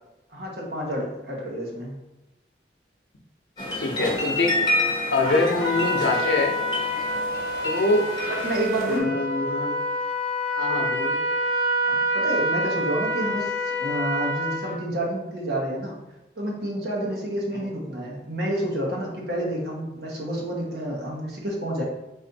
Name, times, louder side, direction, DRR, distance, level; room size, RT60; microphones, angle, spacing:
voice 1, 0.3-1.9 8.3-9.1 11.9-16.0 16.4-21.8, right 1 dB, 70° right, -2 dB, 1.1 m, -29 dB
sound 1, 3.6-9.0, left 1 dB, 25° left, 0.9 m, -29 dB
voice 2, 3.8-4.5 5.1-6.5 7.6-8.1 8.9-9.7 10.6-11.2 17.5-17.7, left 3 dB, 75° left, 1 dB, 0.7 m, -24 dB
Trumpet, 5.2-14.8, equal, 45° right, 1.1 m, -27 dB
4.1 x 2.6 x 4.0 m, 0.96 s
head